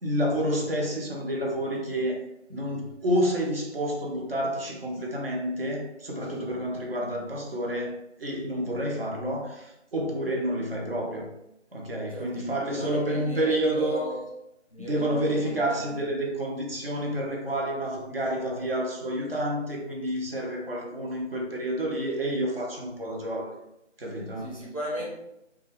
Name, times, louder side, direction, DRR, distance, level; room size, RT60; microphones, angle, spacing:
voice 1, 0.0-2.2 2.5-11.3 11.7-14.2 14.8-23.6 24.0-24.5, right 1 dB, 50° right, -1 dB, 0.7 m, -29 dB
voice 2, 12.7-14.2 14.7-15.6 24.4-25.1, right 1 dB, 30° left, -5 dB, 0.5 m, -36 dB
2.3 x 2.2 x 3.2 m, 0.84 s
figure-of-eight pair, 155°, 37 cm